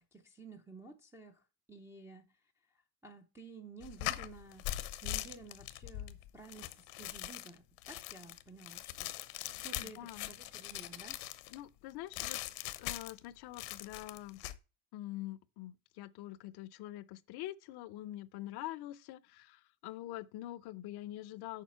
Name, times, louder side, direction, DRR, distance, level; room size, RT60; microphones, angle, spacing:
voice 1, 0.1-2.3 3.0-4.7 5.0-9.1 9.6-11.2, right 3 dB, 5° right, 0.3 m, -53 dB
sound 1, 3.8-11.6 12.1-13.3 13.5-14.6, left 16 dB, 85° left, 0.9 m, -41 dB
voice 2, 9.8-10.3 11.5-12.4 12.8-14.4 14.9-21.6, left 15 dB, 55° left, 0.5 m, -45 dB
7.4 x 5.0 x 5.6 m
cardioid pair, 155°, 50 cm